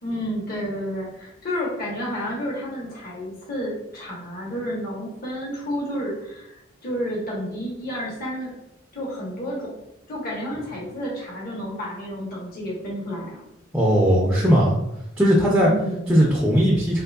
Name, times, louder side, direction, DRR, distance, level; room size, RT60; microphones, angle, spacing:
voice 1, 0.0-6.5 6.8-8.6 8.9-9.8 10.1-13.4 15.5-16.2, equal, 45° left, -4 dB, 0.9 m, -30 dB
voice 2, 13.7-14.7 15.2-15.7 16.1-17.0, equal, 5° right, -5 dB, 0.5 m, -18 dB
3.7 x 2.9 x 2.3 m, 0.87 s
head